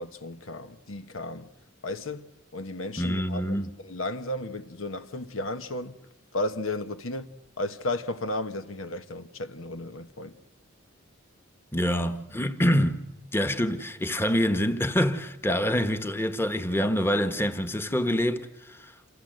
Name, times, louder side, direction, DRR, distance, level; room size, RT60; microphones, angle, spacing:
voice 1, 0.0-1.5 1.8-6.0 6.3-7.3 7.6-10.3, left 1 dB, 80° left, 1.3 m, -34 dB
voice 2, 3.0-3.7 11.7-13.0 13.3-18.9, equal, 10° left, 1.3 m, -26 dB
28.0 x 27.0 x 7.8 m
head